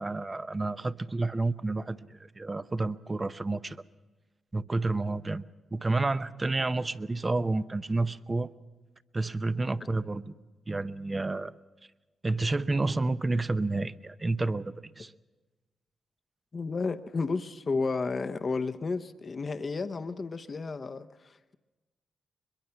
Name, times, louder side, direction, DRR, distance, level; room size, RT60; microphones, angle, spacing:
voice 1, 0.0-3.8 4.5-5.4 5.7-8.5 9.1-10.3 10.7-11.5 12.2-15.1, right 2 dB, 30° right, 13 dB, 0.8 m, -30 dB
voice 2, 16.5-21.5, left 4 dB, 45° left, 10 dB, 0.9 m, -32 dB
22.0 x 22.0 x 5.8 m, 1.2 s
supercardioid pair, 55°, 0 cm